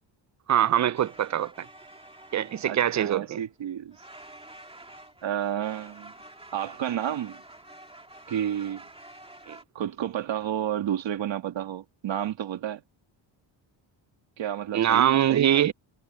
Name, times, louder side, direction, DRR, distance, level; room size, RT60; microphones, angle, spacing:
voice 1, 0.5-1.7 2.3-3.4 9.5-9.6 14.7-15.7, right 11 dB, 40° right, 0.4 m, -23 dB
sound 1, 0.9-3.6 3.9-9.6, right 1 dB, 10° right, 2.0 m, -48 dB
voice 2, 2.7-4.0 5.2-6.1 6.5-7.4 8.3-8.8 9.8-12.8 14.4-15.7, right 10 dB, 65° right, 1.9 m, -31 dB
cardioid pair, 125°, 47 cm